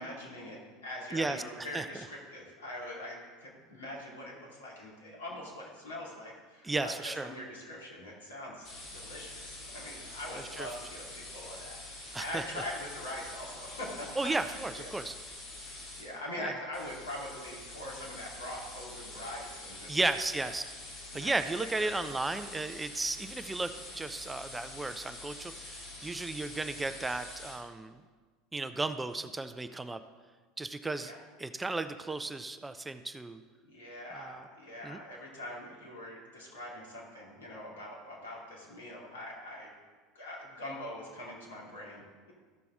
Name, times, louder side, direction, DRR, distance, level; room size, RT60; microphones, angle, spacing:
voice 1, 0.0-14.9 16.0-19.9 20.4-20.5 21.1-22.3 31.0-31.2 33.6-39.7 40.1-42.3, left 1 dB, 75° left, -3 dB, 2.3 m, -43 dB
voice 2, 1.1-1.9 6.6-7.3 10.3-10.7 12.1-12.6 14.2-15.1 16.4-16.5 19.9-20.6 21.1-28.0 28.5-30.0 30.6-31.1 31.4-33.4 34.1-34.4 34.8-35.0, right 2 dB, 15° right, 10 dB, 0.5 m, -34 dB
sound 1, 8.6-16.1 16.7-27.5, left 2 dB, 50° left, 2.9 m, -46 dB
14.0 x 5.8 x 3.7 m, 1.5 s
figure-of-eight pair, 75°, 0 cm